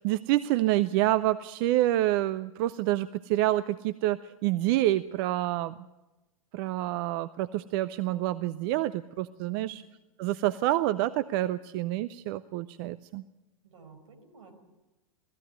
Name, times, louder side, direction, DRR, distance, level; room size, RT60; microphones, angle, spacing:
voice 1, 0.0-5.7 6.5-9.8 10.2-13.2, right 15 dB, 45° right, 15 dB, 0.6 m, -27 dB
voice 2, 9.4-9.7 13.6-14.5, right 6 dB, 65° right, 6 dB, 5.1 m, -52 dB
19.0 x 14.5 x 9.5 m, 1.1 s
figure-of-eight pair, 105°, 17 cm